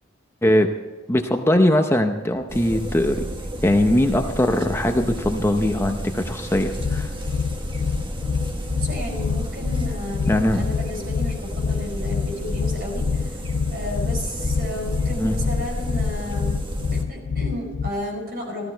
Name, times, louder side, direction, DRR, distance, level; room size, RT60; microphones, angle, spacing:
voice 1, 1.1-3.2 3.6-7.1 10.3-10.6 15.2-15.4, left 1 dB, 15° left, 5 dB, 0.7 m, -20 dB
sound 1, 2.5-17.0, equal, 25° right, 1.4 m, -31 dB
sound 2, 6.8-17.9, left 6 dB, 85° left, 0.5 m, -26 dB
voice 2, 8.8-13.4 13.7-16.6 16.9-18.7, left 1 dB, 50° right, 0 dB, 4.9 m, -33 dB
15.0 x 13.5 x 4.5 m, 1.3 s
head